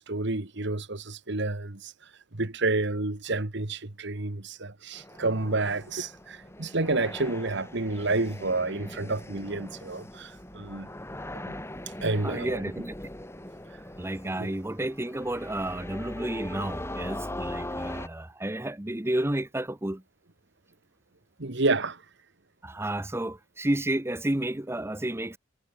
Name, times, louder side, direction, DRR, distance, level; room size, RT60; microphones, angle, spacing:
voice 1, 0.0-1.9 2.3-10.9 11.5-11.6 12.0-12.6 14.4-14.5 21.4-22.0, right 3 dB, 60° right, 1.7 m, -29 dB
sound 1, 4.9-18.1, left 1 dB, 15° left, 4.1 m, -40 dB
voice 2, 12.2-12.9 14.0-20.0 22.6-25.4, right 1 dB, 15° right, 0.9 m, -31 dB
head